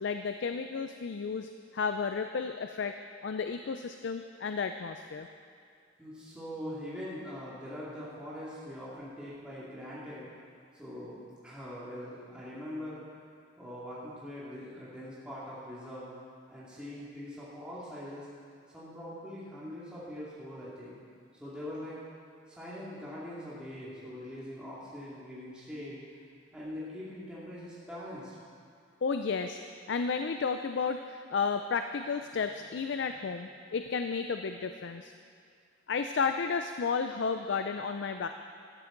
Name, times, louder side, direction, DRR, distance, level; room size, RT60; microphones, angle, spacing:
voice 1, 0.0-2.9 3.2-5.3 29.0-29.6 29.9-35.1 35.9-38.3, left 5 dB, 65° left, 7 dB, 0.4 m, -32 dB
voice 2, 6.0-10.3 10.7-13.0 13.6-16.1 16.5-18.3 18.7-21.0 21.4-22.0 22.5-26.0 26.5-28.4, left 1 dB, 5° right, -10 dB, 2.3 m, -42 dB
13.5 x 12.5 x 3.9 m, 2.3 s
head